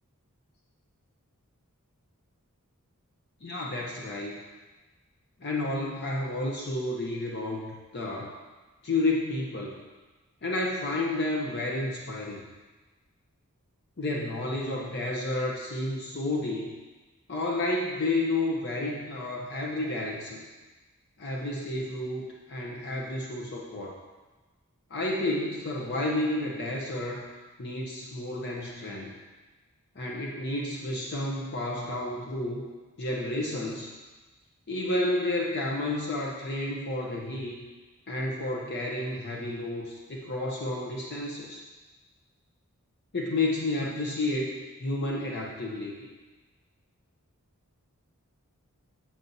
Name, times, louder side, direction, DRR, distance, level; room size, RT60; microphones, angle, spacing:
voice 1, 3.4-4.4 5.4-8.4 8.8-9.8 10.4-12.4 14.0-16.7 17.3-20.4 21.2-24.0 24.9-27.3 27.6-29.1 29.9-32.6 33.0-33.9 34.7-37.6 38.1-41.6 43.1-46.1, left 2 dB, 50° left, -2 dB, 0.8 m, -31 dB
7.4 x 7.2 x 2.7 m, 1.2 s
head